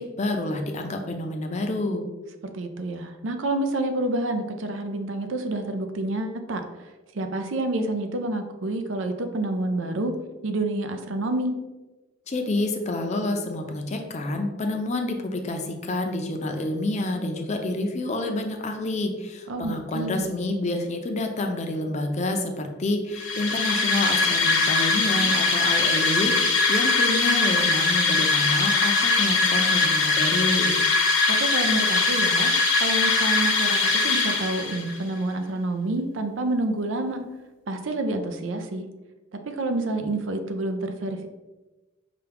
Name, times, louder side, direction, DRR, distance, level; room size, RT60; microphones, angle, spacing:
voice 1, 0.0-2.0 12.3-30.7, left 2 dB, 35° left, 4 dB, 0.5 m, -28 dB
voice 2, 2.5-6.6 7.1-10.1 10.4-11.6 19.5-20.3 31.3-37.2 37.7-38.9 39.4-41.3, right 2 dB, 85° right, 6 dB, 0.5 m, -28 dB
sound 1, 23.1-35.0, left 3 dB, 75° left, 0.9 m, -22 dB
5.7 x 2.3 x 3.4 m, 1.1 s
head